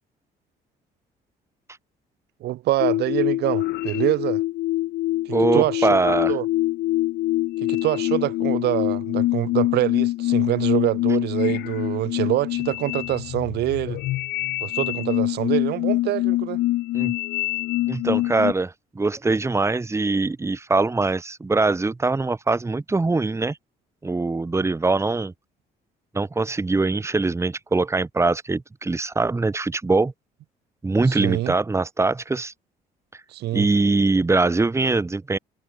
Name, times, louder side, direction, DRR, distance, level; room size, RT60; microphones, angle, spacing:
voice 1, 2.4-4.4 5.3-5.9 6.3-6.4 7.6-14.0 14.6-16.6 31.1-31.5 33.3-33.7, right 15 dB, 75° right, 5.6 m, -25 dB
sound 1, 2.8-18.5, left 17 dB, 80° left, 1.7 m, -25 dB
voice 2, 5.3-6.3 16.9-17.1 17.9-23.6 24.0-25.3 26.1-30.1 30.8-32.5 33.5-35.4, right 3 dB, 15° right, 2.8 m, -22 dB
cardioid pair, 110°, 17 cm